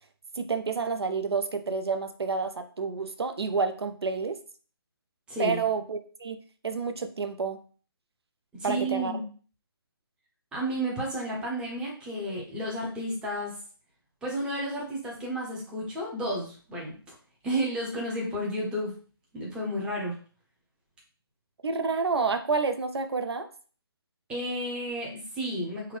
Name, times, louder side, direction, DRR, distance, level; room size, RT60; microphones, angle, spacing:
voice 1, 0.4-4.4 5.4-6.4 6.6-7.6 8.6-9.1 21.6-23.5, right 5 dB, 85° right, 8 dB, 0.5 m, -29 dB
voice 2, 5.3-5.6 8.5-9.2 10.5-13.5 14.2-16.9 17.4-18.9 19.3-20.1 24.3-26.0, right 1 dB, 5° right, -4 dB, 0.7 m, -32 dB
3.5 x 2.2 x 3.2 m, 0.40 s
figure-of-eight pair, 150°, 13 cm